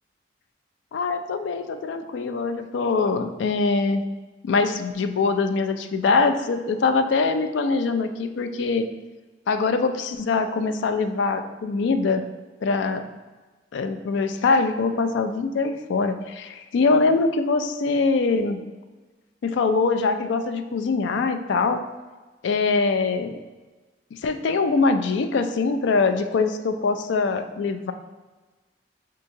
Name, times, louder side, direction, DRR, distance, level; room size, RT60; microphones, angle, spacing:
voice 1, 0.9-4.0 4.4-8.8 9.5-12.2 12.6-13.0 13.7-18.6 19.4-21.8 22.4-23.4 24.1-27.9, left 4 dB, 75° left, 8 dB, 0.3 m, -23 dB
6.2 x 2.8 x 2.6 m, 1.3 s
head